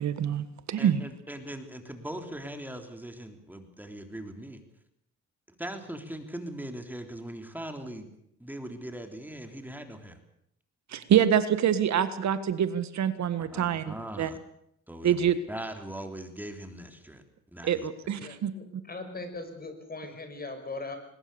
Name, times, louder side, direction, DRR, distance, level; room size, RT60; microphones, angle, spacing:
voice 1, 0.0-1.0 10.9-14.3 15.0-15.4 17.6-18.5, right 9 dB, 65° right, 12 dB, 1.6 m, -26 dB
voice 2, 0.8-4.6 5.5-8.1 8.4-10.2 13.4-14.4 14.9-17.2 17.5-17.9, right 1 dB, 5° right, 5 dB, 3.5 m, -40 dB
voice 3, 18.2-21.0, left 3 dB, 30° left, 7 dB, 5.7 m, -40 dB
21.5 x 20.5 x 7.0 m, 0.74 s
cardioid pair, 90°, 30 cm